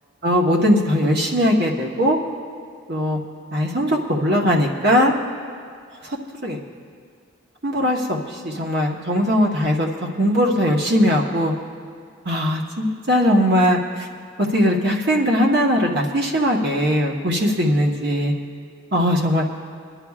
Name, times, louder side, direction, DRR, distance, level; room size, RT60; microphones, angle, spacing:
voice 1, 0.2-2.2 2.9-3.2 3.5-5.1 6.4-6.6 7.6-8.2 8.4-9.9 10.2-11.5 12.2-13.8 14.5-18.3 18.9-19.4, equal, 50° right, 0 dB, 1.2 m, -19 dB
27.0 x 11.0 x 2.4 m, 2.2 s
head